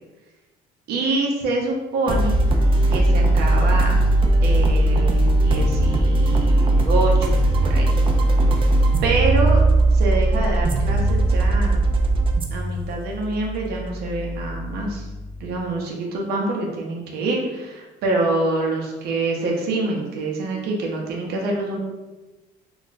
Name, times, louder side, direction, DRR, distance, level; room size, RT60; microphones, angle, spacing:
voice 1, 0.9-2.4 2.9-4.0 4.4-7.3 7.6-7.9 8.5-8.7 9.0-9.6 9.9-11.8 12.5-15.0 15.4-21.8, right 2 dB, 75° right, -1 dB, 0.7 m, -26 dB
sound 1, 2.1-15.5, right 1 dB, 30° right, 0.4 m, -19 dB
2.3 x 2.1 x 3.9 m, 1.1 s
cardioid pair, 110°, 17 cm